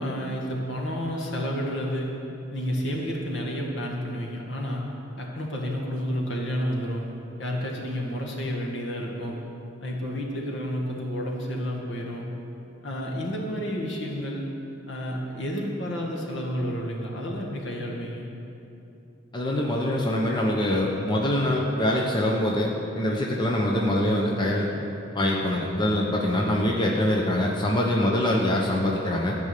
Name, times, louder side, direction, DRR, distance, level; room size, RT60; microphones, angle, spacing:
voice 1, 0.0-2.2 2.5-4.8 5.2-7.1 7.4-9.4 9.8-12.3 12.8-14.5 14.9-18.3, equal, 70° left, -1 dB, 1.9 m, -30 dB
voice 2, 19.3-22.7 23.0-24.9 25.1-29.3, left 1 dB, 25° left, -2 dB, 1.0 m, -24 dB
14.0 x 5.4 x 8.4 m, 2.8 s
head